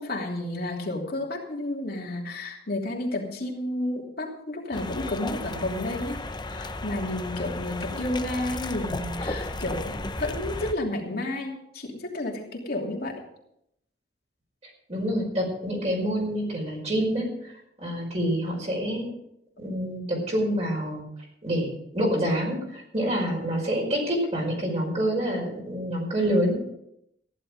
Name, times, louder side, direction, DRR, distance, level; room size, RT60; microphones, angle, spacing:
voice 1, 0.0-13.2, left 1 dB, 60° left, 0 dB, 3.0 m, -31 dB
sound 1, 4.7-10.7, left 2 dB, 25° left, 0.8 m, -34 dB
voice 2, 14.9-17.5 17.8-19.1 19.6-21.0 21.4-26.6, equal, 40° right, -1 dB, 5.4 m, -27 dB
15.0 x 11.0 x 5.1 m, 0.77 s
head